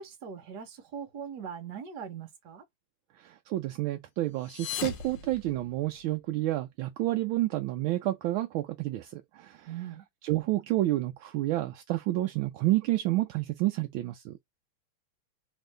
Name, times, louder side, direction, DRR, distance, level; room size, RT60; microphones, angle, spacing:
voice 1, 0.0-2.6 9.7-10.0, right 7 dB, 60° right, 1.5 m, -40 dB
voice 2, 3.2-9.7 10.2-14.4, right 16 dB, 80° right, 1.3 m, -29 dB
sound 1, 4.3-6.2, left 9 dB, 70° left, 1.3 m, -39 dB
3.6 x 2.5 x 3.2 m
omnidirectional pair, 2.3 m